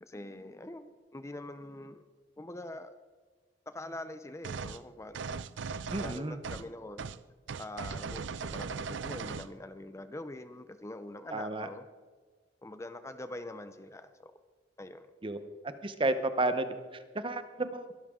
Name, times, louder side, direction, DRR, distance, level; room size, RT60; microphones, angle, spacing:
voice 1, 0.0-2.0 2.4-2.9 3.7-5.2 6.0-7.1 7.6-11.9 12.6-14.3 14.8-15.1, left 1 dB, 15° left, 10 dB, 0.6 m, -44 dB
sound 1, 4.4-4.8 5.1-6.7 7.0-7.2 7.5-9.5, right 5 dB, 75° right, 0.5 m, -38 dB
voice 2, 5.9-6.4 11.3-11.7 15.2-15.4 15.8-16.7 17.1-17.9, right 2 dB, 30° right, 10 dB, 0.9 m, -31 dB
22.0 x 12.5 x 3.7 m, 1.5 s
head